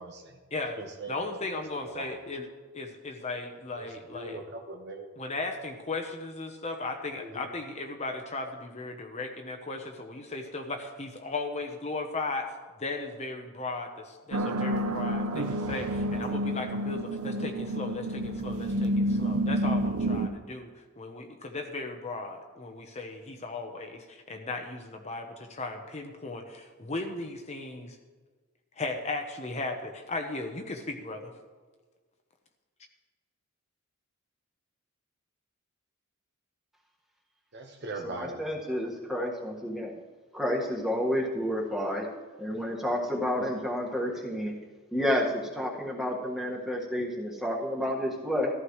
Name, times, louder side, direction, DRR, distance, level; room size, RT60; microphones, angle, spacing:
voice 1, 0.0-0.4 0.8-2.2 3.8-5.1 7.2-7.4 37.5-38.5, right 2 dB, 50° right, 4 dB, 1.2 m, -41 dB
voice 2, 1.1-2.5 2.7-4.4 5.2-28.0 28.8-31.3, left 3 dB, 30° left, 3 dB, 0.9 m, -36 dB
sound 1, 14.3-20.3, right 1 dB, 80° right, 0.7 m, -29 dB
voice 3, 38.0-39.9 40.3-42.0 42.4-44.6 44.9-45.3 45.5-48.5, equal, ahead, -2 dB, 1.7 m, -30 dB
14.5 x 13.5 x 3.2 m, 1.4 s
head